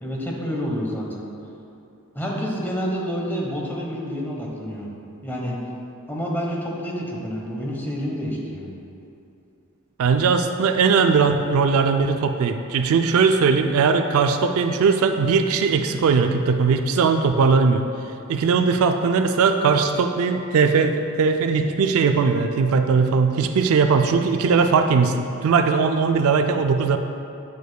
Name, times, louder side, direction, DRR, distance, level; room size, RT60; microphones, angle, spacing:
voice 1, 0.0-1.3 2.1-4.9 5.2-5.6 6.1-8.7, equal, 10° left, -3 dB, 0.9 m, -28 dB
voice 2, 10.0-17.8 18.3-27.0, right 5 dB, 65° right, 6 dB, 0.3 m, -19 dB
9.1 x 6.5 x 2.2 m, 2.7 s
head